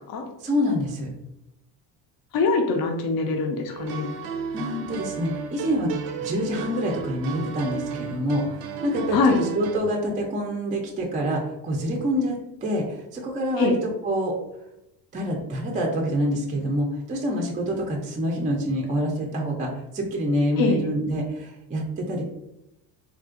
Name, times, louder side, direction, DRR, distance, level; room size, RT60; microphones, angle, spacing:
voice 1, 0.4-1.1 4.5-5.9 6.2-13.8 14.0-14.4 15.1-22.2, equal, 20° right, 0 dB, 0.4 m, -26 dB
voice 2, 2.3-4.2 9.1-9.4 13.6-13.8 20.6-20.8, left 4 dB, 50° left, 3 dB, 0.6 m, -23 dB
sound 1, 3.7-9.8, right 6 dB, 85° right, 0.5 m, -33 dB
3.7 x 2.4 x 2.4 m, 0.86 s
cardioid pair, 115°, 45 cm